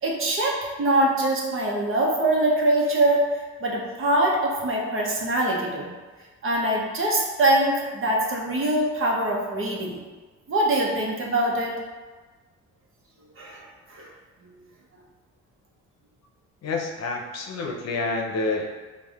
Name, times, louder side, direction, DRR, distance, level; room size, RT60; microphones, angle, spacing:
voice 1, 0.0-3.2 3.6-5.9 6.4-10.0 10.5-11.7 13.4-14.1, right 1 dB, 45° right, -2 dB, 1.0 m, -23 dB
voice 2, 16.6-18.7, left 3 dB, 60° left, 1 dB, 0.7 m, -28 dB
4.7 x 2.4 x 3.5 m, 1.3 s
cardioid pair, 90°, 30 cm